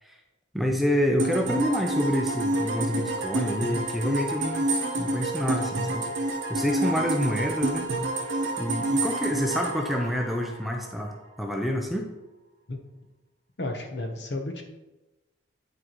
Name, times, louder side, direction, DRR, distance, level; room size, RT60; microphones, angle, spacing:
voice 1, 0.5-4.7 5.0-6.1 6.5-7.9 8.6-12.1, equal, ahead, 2 dB, 0.5 m, -27 dB
sound 1, 1.2-10.9, right 2 dB, 70° right, 1.2 m, -29 dB
voice 2, 13.6-14.6, left 2 dB, 55° left, 4 dB, 0.9 m, -32 dB
10.0 x 4.7 x 3.1 m, 1.1 s
head